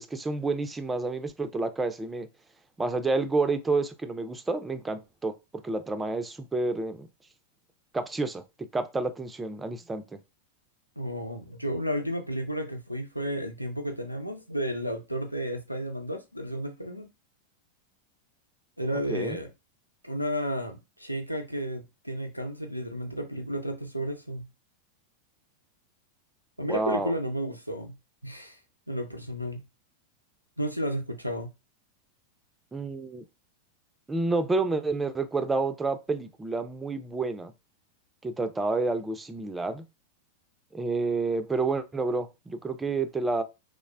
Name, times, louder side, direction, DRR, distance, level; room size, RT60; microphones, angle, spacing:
voice 1, 0.0-2.3 2.8-7.1 7.9-10.2 19.1-19.4 26.7-27.1 32.7-33.2 34.1-37.5 38.2-39.8 40.7-43.4, right 3 dB, 10° right, 0.4 m, -29 dB
voice 2, 11.0-17.1 18.8-19.5 20.0-24.5 26.6-28.0 28.2-28.6 28.9-29.6 30.6-31.5, equal, 90° right, 0.4 m, -32 dB
3.1 x 2.0 x 2.3 m
figure-of-eight pair, 90°, 0 cm